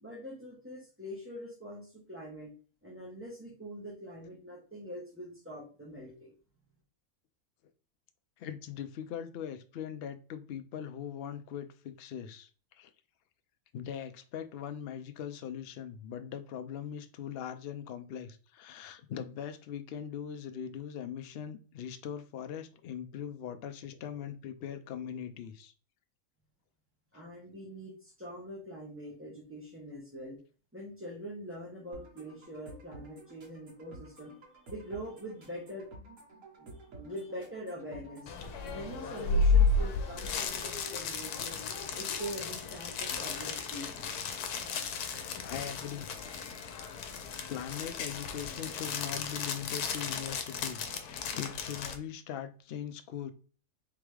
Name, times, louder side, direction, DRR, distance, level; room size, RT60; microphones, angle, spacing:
voice 1, 0.0-2.5 2.8-6.3 27.1-30.4 30.7-34.3 34.7-35.8 36.6-38.3 38.7-41.6 41.9-44.1, equal, 10° right, 1.1 m, -43 dB
voice 2, 8.4-12.5 12.8-12.9 13.7-25.7 45.4-46.1 47.5-53.3, left 9 dB, 70° left, 0.5 m, -41 dB
sound 1, 31.9-39.9, right 2 dB, 70° right, 1.9 m, -52 dB
sound 2, 38.3-52.0, left 4 dB, 90° left, 1.2 m, -33 dB
3.9 x 3.5 x 3.2 m
omnidirectional pair, 1.6 m